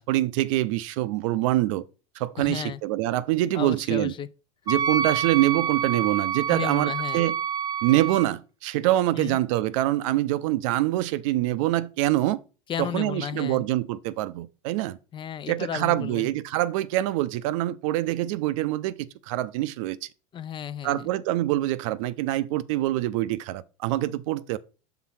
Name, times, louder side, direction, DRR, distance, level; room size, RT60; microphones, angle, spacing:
voice 1, 0.0-1.8 2.2-4.1 4.7-7.4 7.8-12.4 12.8-15.0 15.5-18.9 19.3-20.1 20.8-24.6, right 15 dB, 65° right, 0.5 m, -25 dB
voice 2, 2.4-2.8 3.5-4.3 6.5-7.2 9.2-9.4 12.7-13.7 15.1-16.3 20.3-21.1, left 9 dB, 30° left, 0.4 m, -33 dB
Wind instrument woodwind instrument, 4.7-8.3, right 7 dB, 20° right, 0.7 m, -28 dB
5.8 x 3.7 x 5.7 m
hypercardioid pair, 95°, 17 cm